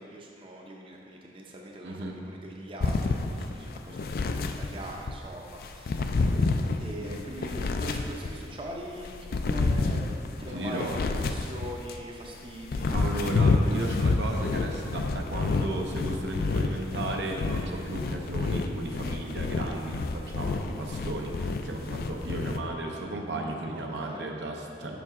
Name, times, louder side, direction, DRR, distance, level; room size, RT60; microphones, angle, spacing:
voice 1, 0.0-4.1 4.6-6.5 6.8-10.0 10.4-13.1 23.7-24.2, right 1 dB, 30° right, -1 dB, 0.6 m, -42 dB
voice 2, 1.8-2.2 10.5-11.0 12.9-25.0, right 2 dB, 80° right, 1 dB, 0.7 m, -35 dB
sound 1, 2.8-5.2 5.6-8.5 9.0-12.0 12.5-22.6, left 3 dB, 55° left, 0.3 m, -29 dB
7.2 x 5.7 x 3.6 m, 2.5 s
head